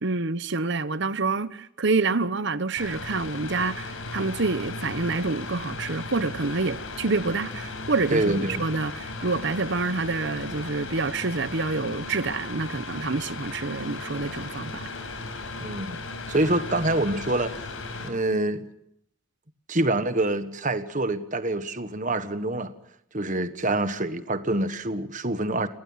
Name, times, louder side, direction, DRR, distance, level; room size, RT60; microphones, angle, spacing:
voice 1, 0.0-14.9, right 3 dB, 60° right, 1.0 m, -27 dB
Mechanical fan, 2.8-18.1, left 3 dB, 80° left, 5.7 m, -36 dB
voice 2, 8.1-8.6 15.6-16.0 16.3-17.5 18.0-18.7 19.7-22.7 23.1-25.7, right 2 dB, 40° right, 1.5 m, -26 dB
30.0 x 19.5 x 5.8 m
head